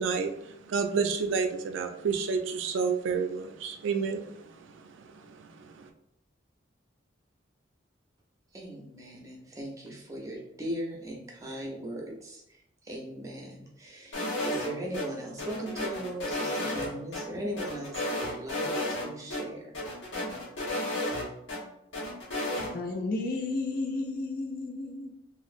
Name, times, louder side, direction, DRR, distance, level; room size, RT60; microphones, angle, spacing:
voice 1, 0.0-5.9, right 5 dB, 75° right, 0.3 m, -31 dB
voice 2, 8.5-19.8, right 1 dB, 15° right, 0.6 m, -39 dB
sound 1, 14.1-15.1 15.4-17.2 17.6-19.1 19.3-19.4 19.7-21.6 21.9-22.7, left 1 dB, 70° left, 1.0 m, -32 dB
voice 3, 22.7-25.1, left 3 dB, 45° left, 0.4 m, -32 dB
3.0 x 2.5 x 2.4 m
head